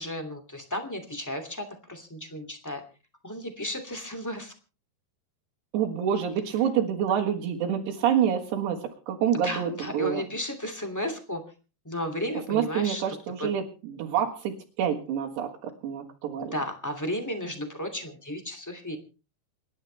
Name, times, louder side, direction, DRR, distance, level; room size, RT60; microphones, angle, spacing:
voice 1, 0.0-2.8 3.2-4.5 9.3-11.4 11.8-13.0 13.4-13.5 16.5-19.0, left 1 dB, 10° left, 3 dB, 1.0 m, -34 dB
voice 2, 5.7-10.2 12.5-16.5, right 9 dB, 75° right, -4 dB, 3.8 m, -27 dB
27.5 x 11.5 x 3.4 m, 0.35 s
omnidirectional pair, 5.1 m